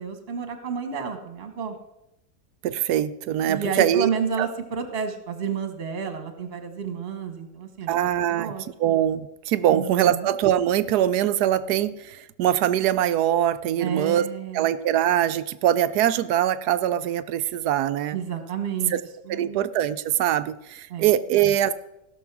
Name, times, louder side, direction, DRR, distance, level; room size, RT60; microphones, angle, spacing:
voice 1, 0.0-1.7 3.5-7.9 8.3-8.6 9.7-10.3 13.8-14.6 18.1-18.9 19.3-19.6 20.9-21.1, right 6 dB, 35° right, 7 dB, 1.4 m, -30 dB
voice 2, 2.6-4.1 4.4-4.5 7.9-8.5 8.8-18.2 18.9-19.0 19.3-21.7, right 11 dB, 75° right, 13 dB, 1.0 m, -23 dB
16.5 x 6.2 x 6.0 m, 0.88 s
omnidirectional pair, 1.9 m